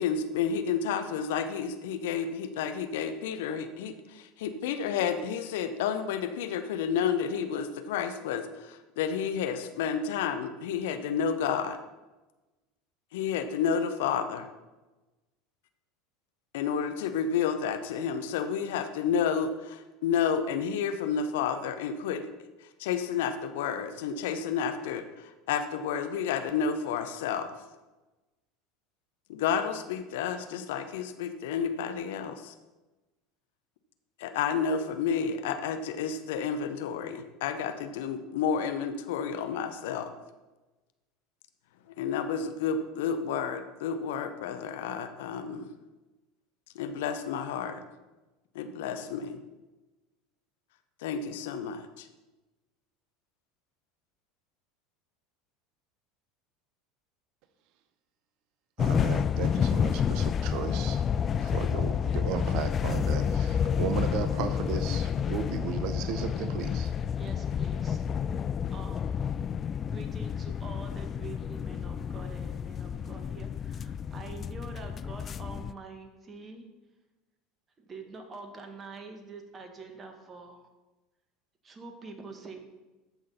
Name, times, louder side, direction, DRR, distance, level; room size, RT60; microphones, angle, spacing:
voice 1, 0.0-11.8 13.1-14.5 16.5-22.3 22.8-27.6 29.3-32.5 34.2-40.1 42.0-45.7 46.7-47.8 48.5-49.4 51.0-52.1, left 7 dB, 65° left, 9 dB, 0.8 m, -31 dB
sound 1, 58.8-75.7, left 8 dB, 35° left, 0.3 m, -30 dB
voice 2, 58.8-61.0 61.4-67.0, right 9 dB, 55° right, 11 dB, 0.7 m, -35 dB
voice 3, 67.2-68.1 68.7-69.2 69.9-76.7 77.8-80.7 81.6-82.7, right 4 dB, 30° right, 5 dB, 1.9 m, -46 dB
14.0 x 6.2 x 4.2 m, 1.1 s
figure-of-eight pair, 75°, 0 cm